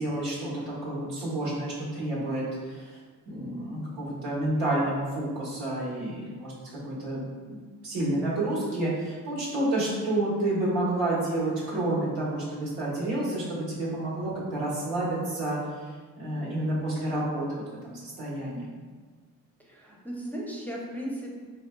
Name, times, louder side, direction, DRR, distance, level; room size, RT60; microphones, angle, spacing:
voice 1, 0.0-3.0 3.3-7.2 7.5-7.6 7.8-15.6 16.2-18.8, right 1 dB, 90° right, -7 dB, 1.1 m, -29 dB
voice 2, 19.6-21.3, equal, 5° left, -3 dB, 0.6 m, -36 dB
3.3 x 2.6 x 2.2 m, 1.5 s
supercardioid pair, 65°, 36 cm